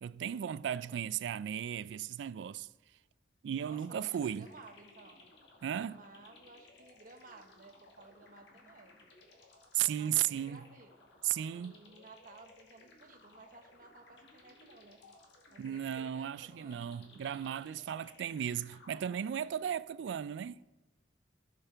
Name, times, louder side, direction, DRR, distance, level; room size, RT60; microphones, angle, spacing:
voice 1, 0.0-2.7 3.4-4.5 5.6-6.0 9.7-10.6 11.2-11.7 15.6-20.6, right 10 dB, 80° right, 0.3 m, -35 dB
sound 1, 3.6-20.0, left 2 dB, 75° left, 1.4 m, -60 dB
voice 2, 3.6-5.3 5.7-9.0 9.8-11.0 11.5-15.0 15.5-17.0, right 3 dB, 50° right, 1.0 m, -56 dB
14.5 x 5.9 x 3.4 m
head